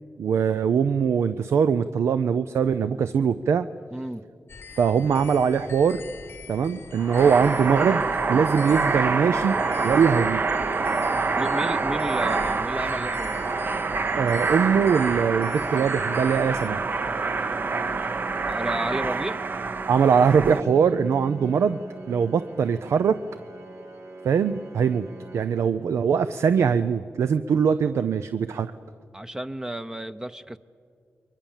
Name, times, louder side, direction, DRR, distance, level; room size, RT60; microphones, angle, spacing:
voice 1, 0.2-3.7 4.8-6.0 6.5-8.0 8.3-9.6 9.8-10.4 14.1-16.9 19.9-21.8 22.1-23.2 24.2-25.1 25.3-28.7, right 6 dB, 90° right, 12 dB, 0.6 m, -22 dB
voice 2, 3.9-4.2 11.4-13.4 18.5-19.5 29.1-30.6, right 1 dB, 15° right, 10 dB, 0.6 m, -32 dB
sound 1, 4.5-16.7, left 6 dB, 60° left, 0.9 m, -44 dB
sound 2, 7.0-20.6, right 4 dB, 45° right, 0.8 m, -26 dB
Organ, 15.3-26.3, right 3 dB, 70° right, 2.0 m, -43 dB
30.0 x 23.0 x 7.3 m, 2.2 s
wide cardioid pair, 95°, 5 cm